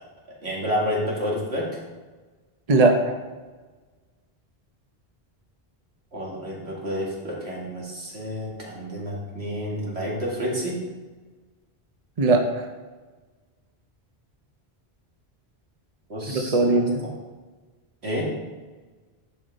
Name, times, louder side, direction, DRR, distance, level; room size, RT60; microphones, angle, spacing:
voice 1, 0.4-1.7 6.1-10.8 16.1-16.8 18.0-18.2, equal, 85° right, -4 dB, 2.4 m, -29 dB
voice 2, 2.7-3.1 12.2-12.7 16.3-17.0, right 2 dB, 40° right, 3 dB, 0.9 m, -20 dB
10.0 x 5.5 x 4.1 m, 1.3 s
omnidirectional pair, 1.1 m